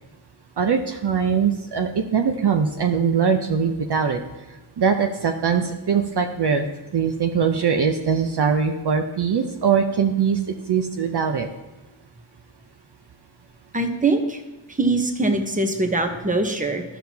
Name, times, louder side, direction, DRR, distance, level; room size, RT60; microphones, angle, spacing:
voice 1, 0.6-4.2 4.8-6.7 6.9-10.4 10.7-11.5, right 6 dB, 55° right, 5 dB, 0.7 m, -21 dB
voice 2, 13.7-14.4 14.7-16.8, right 2 dB, 15° right, 5 dB, 1.0 m, -22 dB
11.5 x 6.0 x 2.8 m, 1.1 s
cardioid pair, 65°, 49 cm